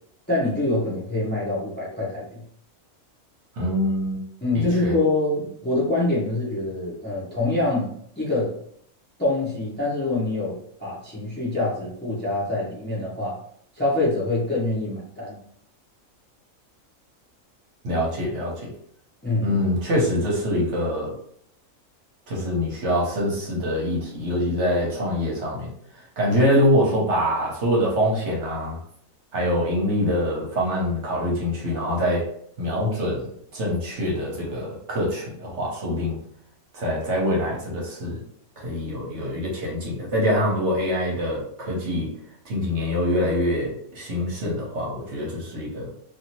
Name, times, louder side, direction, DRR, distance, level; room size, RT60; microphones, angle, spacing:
voice 1, 0.3-2.4 4.4-8.5 9.2-13.4 13.7-15.4 19.2-19.6, left 2 dB, 10° left, -6 dB, 0.7 m, -25 dB
voice 2, 3.5-4.2 4.5-4.9 17.8-18.7 19.4-21.2 22.3-28.8 29.3-32.3 32.6-36.2 36.7-38.2 38.6-42.1 42.4-45.9, equal, 55° right, -3 dB, 1.1 m, -24 dB
2.7 x 2.7 x 2.9 m, 0.66 s
omnidirectional pair, 1.5 m